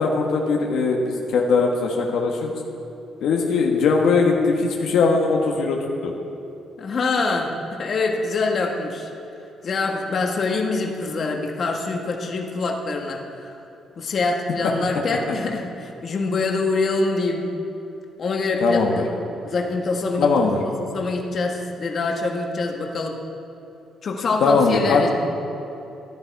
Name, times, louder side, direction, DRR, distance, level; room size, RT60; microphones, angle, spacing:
voice 1, 0.0-2.5 3.2-6.1 18.6-19.0 20.2-20.6 24.4-25.1, left 4 dB, 80° left, 0 dB, 1.2 m, -20 dB
voice 2, 6.8-9.1 9.6-13.6 14.0-17.4 18.2-19.0 19.4-20.3 20.8-23.2 24.0-25.1, left 3 dB, 50° left, 2 dB, 1.4 m, -25 dB
14.0 x 10.5 x 4.7 m, 2.8 s
cardioid pair, 90°, 0 cm